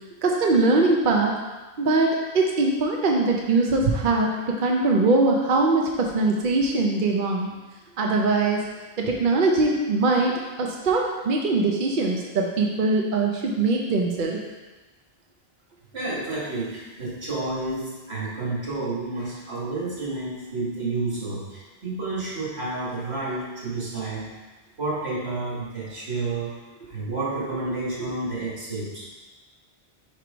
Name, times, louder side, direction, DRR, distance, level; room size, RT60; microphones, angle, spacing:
voice 1, 0.2-1.4 1.8-7.5 8.0-8.7 9.0-14.4, right 3 dB, 55° right, 0 dB, 0.8 m, -22 dB
voice 2, 15.9-24.3 24.8-26.5 26.9-29.2, right 2 dB, 85° right, -7 dB, 2.2 m, -30 dB
4.6 x 4.6 x 5.0 m, 1.2 s
omnidirectional pair, 1.1 m